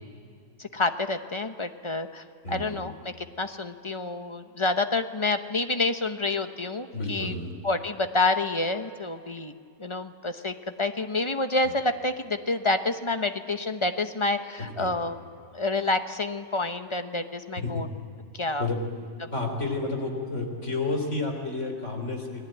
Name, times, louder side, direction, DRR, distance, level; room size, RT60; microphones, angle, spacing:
voice 1, 0.6-7.3 7.6-9.5 9.8-15.2 15.5-17.9 18.3-18.7 19.2-19.3, left 2 dB, 25° left, 8 dB, 0.7 m, -28 dB
voice 2, 2.4-2.8 6.9-7.5 14.8-14.9 17.6-17.8 18.6-18.8 19.3-22.3, left 3 dB, 45° left, 3 dB, 4.1 m, -30 dB
29.5 x 19.0 x 9.1 m, 2.5 s
omnidirectional pair, 1.7 m